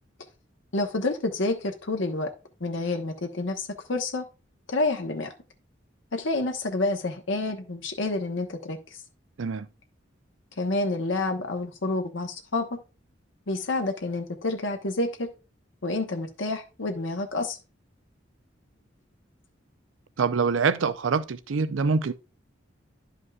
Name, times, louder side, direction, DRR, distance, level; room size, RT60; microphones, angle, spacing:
voice 1, 0.7-2.3 2.6-4.2 4.7-5.3 6.1-8.8 10.6-12.6 13.5-15.3 15.8-17.6, left 2 dB, 70° left, 1.0 m, -28 dB
voice 2, 20.2-22.1, right 5 dB, 80° right, 0.5 m, -25 dB
11.0 x 5.2 x 2.4 m
head